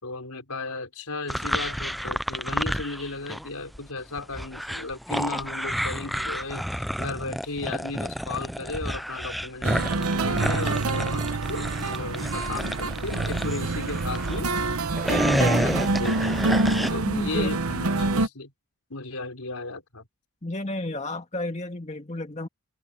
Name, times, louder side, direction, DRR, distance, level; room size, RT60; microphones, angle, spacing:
voice 1, 0.0-14.5 15.1-16.4 16.9-18.5 18.9-20.0, left 3 dB, 85° left, 4.3 m, -35 dB
sound 1, 1.3-3.5 3.7-14.4 14.8-16.9, equal, ahead, 0.3 m, -30 dB
sound 2, 9.6-18.3, right 3 dB, 75° right, 1.0 m, -26 dB
voice 2, 17.1-17.6 20.4-22.5, left 2 dB, 30° left, 1.9 m, -32 dB
open air
head